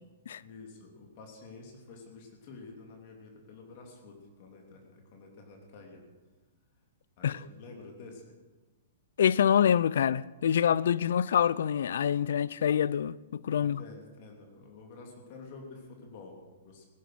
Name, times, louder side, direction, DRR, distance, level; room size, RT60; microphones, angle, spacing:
voice 1, 0.4-6.0 7.2-8.3 13.6-16.9, left 3 dB, 50° left, 3.1 m, -49 dB
voice 2, 9.2-13.8, left 8 dB, 70° left, 0.4 m, -26 dB
17.5 x 10.0 x 6.3 m
hypercardioid pair, 135°, 0 cm